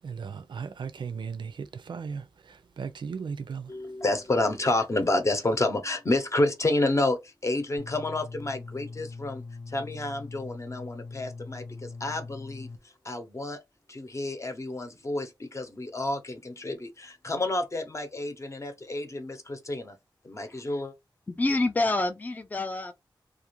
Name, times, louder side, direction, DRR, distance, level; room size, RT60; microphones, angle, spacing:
voice 1, 0.0-3.7, right 6 dB, 75° right, 0.4 m, -37 dB
voice 2, 3.7-12.7 13.0-13.6 13.9-19.9 20.2-20.9, left 2 dB, 35° left, 0.7 m, -29 dB
sound 1, 7.8-12.8, left 3 dB, 85° left, 0.7 m, -41 dB
voice 3, 21.3-22.9, left 2 dB, 20° left, 0.4 m, -27 dB
2.4 x 2.4 x 2.9 m
wide cardioid pair, 95°, 8 cm